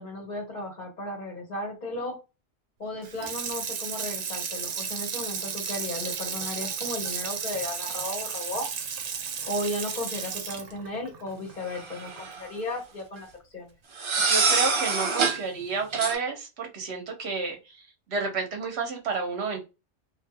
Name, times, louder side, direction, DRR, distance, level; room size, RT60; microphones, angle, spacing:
voice 1, 0.0-2.2 2.8-8.7 9.5-13.3 13.5-13.7, left 1 dB, 45° left, -1 dB, 1.3 m, -35 dB
Water tap faucet / Sink (filling or washing), 3.0-12.2 12.6-12.7, right 6 dB, 85° right, 1.0 m, -34 dB
sound 1, 11.7-12.4 14.0-15.4 15.9-16.2, right 4 dB, 45° right, 0.4 m, -25 dB
voice 2, 14.3-17.8 18.1-19.6, right 4 dB, 70° right, 3 dB, 1.2 m, -30 dB
3.2 x 2.7 x 2.2 m, 0.27 s
omnidirectional pair, 1.2 m